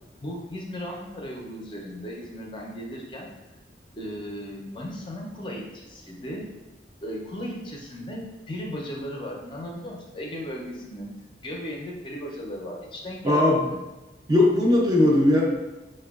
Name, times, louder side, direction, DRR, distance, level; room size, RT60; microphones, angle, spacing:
voice 1, 0.2-3.3 4.0-6.5 7.0-8.2 8.5-11.1 11.4-13.8, equal, 30° left, -1 dB, 0.5 m, -36 dB
voice 2, 13.2-13.6 14.3-15.4, left 1 dB, 20° right, -2 dB, 0.5 m, -18 dB
5.4 x 2.2 x 2.3 m, 1.1 s
head